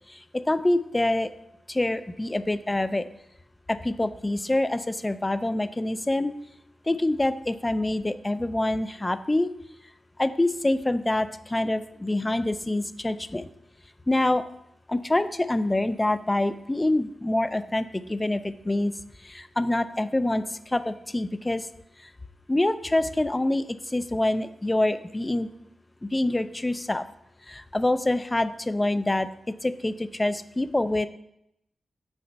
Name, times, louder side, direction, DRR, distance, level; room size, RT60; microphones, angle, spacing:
voice 1, 0.1-1.3 1.7-3.0 3.7-6.3 6.9-9.5 10.2-13.5 14.1-14.4 14.9-18.9 19.2-21.7 22.5-25.5 26.0-27.0 27.5-29.3 29.6-31.1, left 1 dB, 15° left, 11 dB, 0.3 m, -26 dB
6.5 x 4.4 x 5.6 m, 0.79 s
wide cardioid pair, 175°, 0 cm